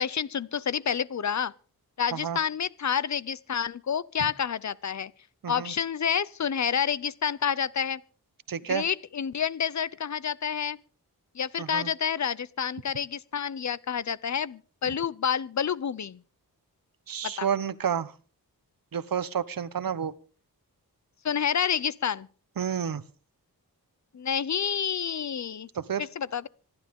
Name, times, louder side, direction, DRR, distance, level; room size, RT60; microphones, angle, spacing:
voice 1, 0.0-1.5 2.0-5.1 5.5-8.0 8.7-10.8 11.3-16.2 17.2-17.5 21.2-22.3 24.1-25.7 26.0-26.5, left 7 dB, 50° left, 0.7 m, -29 dB
voice 2, 5.4-5.7 8.5-8.8 11.6-11.9 17.1-18.1 18.9-20.1 22.6-23.0 25.7-26.1, right 8 dB, 65° right, 1.0 m, -30 dB
26.5 x 11.5 x 3.7 m
wide cardioid pair, 130°, 37 cm